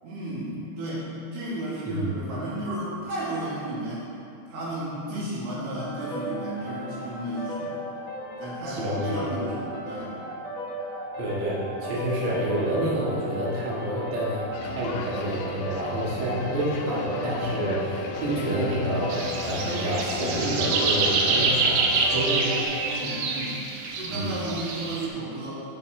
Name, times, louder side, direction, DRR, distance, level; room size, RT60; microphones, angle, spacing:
voice 1, 0.0-4.1 4.5-7.7 8.4-10.2 22.8-23.6 24.0-25.6, right 1 dB, 75° right, -9 dB, 4.4 m, -33 dB
sound 1, 5.8-23.2, equal, 60° left, 1.8 m, -36 dB
voice 2, 8.7-9.5 11.2-14.4 14.7-19.1 19.4-22.6 24.1-24.4, right 1 dB, 55° right, -7 dB, 1.5 m, -28 dB
sound 2, 14.5-22.6, left 4 dB, 85° left, 2.9 m, -36 dB
sound 3, 19.1-25.1, right 4 dB, 90° right, 3.1 m, -26 dB
14.5 x 6.0 x 3.3 m, 2.7 s
omnidirectional pair, 5.0 m